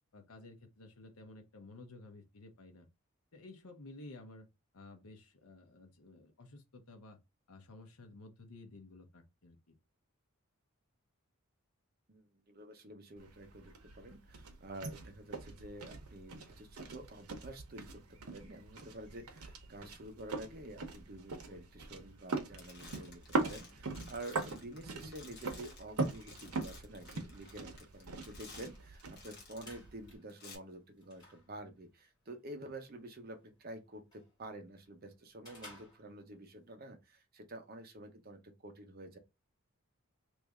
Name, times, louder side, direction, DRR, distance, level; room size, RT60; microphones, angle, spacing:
voice 1, 0.1-2.9 3.3-4.5 4.7-7.2 7.5-9.7 24.8-24.9, left 2 dB, 80° left, 0.8 m, -53 dB
voice 2, 12.1-39.2, right 1 dB, 45° right, 0.8 m, -49 dB
sound 1, 13.2-30.2, right 3 dB, 90° right, 0.8 m, -42 dB
sound 2, 22.1-22.3 22.6-29.8 30.3-30.6, left 3 dB, 45° left, 1.2 m, -55 dB
sound 3, 29.6-36.7, left 2 dB, 20° left, 1.7 m, -60 dB
3.1 x 2.6 x 3.5 m
head